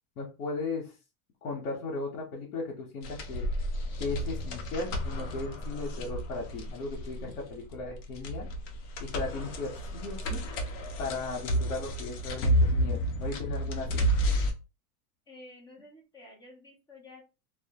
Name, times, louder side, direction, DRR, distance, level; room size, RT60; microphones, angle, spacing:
voice 1, 0.2-0.9 1.4-3.5 4.0-8.5 9.0-10.4 11.0-14.0, left 3 dB, 90° left, -2 dB, 0.9 m, -36 dB
sound 1, 3.0-14.5, equal, 55° left, 0.6 m, -31 dB
voice 2, 15.3-17.2, left 2 dB, 10° left, 0 dB, 0.3 m, -51 dB
2.2 x 2.1 x 2.7 m, 0.30 s
supercardioid pair, 140°, 44 cm